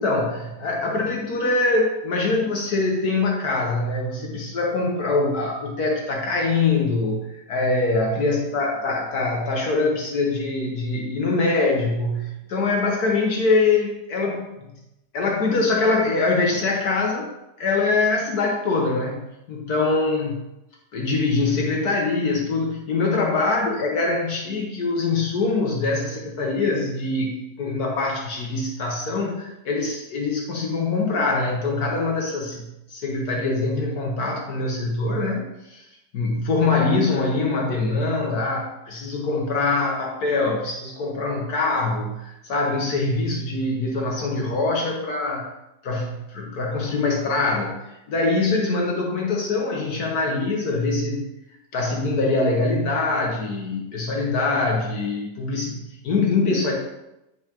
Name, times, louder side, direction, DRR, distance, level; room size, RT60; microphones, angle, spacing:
voice 1, 0.0-14.8 15.1-17.3 17.6-19.2 19.5-20.5 20.9-32.6 32.9-35.8 36.1-45.5 45.8-47.8 48.1-51.3 51.7-56.7, left 3 dB, 60° left, 0 dB, 1.4 m, -23 dB
9.4 x 5.4 x 2.9 m, 0.91 s
omnidirectional pair, 1.9 m